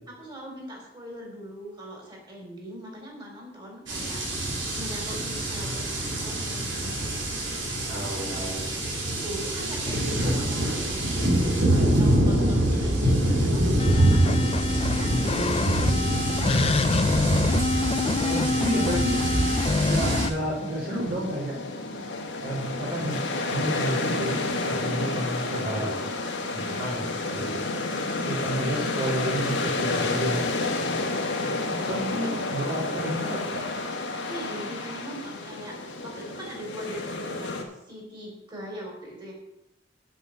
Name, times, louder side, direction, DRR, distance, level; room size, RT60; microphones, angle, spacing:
voice 1, 0.1-4.2 4.7-5.9 6.2-7.2 9.0-14.5 15.0-15.4 16.3-16.8 18.5-18.6 26.6-26.9 32.9-33.2 34.3-37.6 37.9-39.3, equal, 25° right, -1 dB, 3.7 m, -40 dB
sound 1, 3.9-20.3, right 1 dB, 75° right, 3.3 m, -25 dB
voice 2, 7.9-8.7 18.2-19.2 19.8-21.5 22.4-23.2 23.5-26.0 26.5-27.0 27.3-27.6 28.3-30.4 31.7-33.6, right 1 dB, 55° right, -8 dB, 3.9 m, -31 dB
sound 2, 13.8-20.3, left 3 dB, 30° left, 0.4 m, -26 dB
sound 3, 19.1-37.6, left 2 dB, 75° left, 1.5 m, -30 dB
8.2 x 6.4 x 7.9 m, 0.89 s
head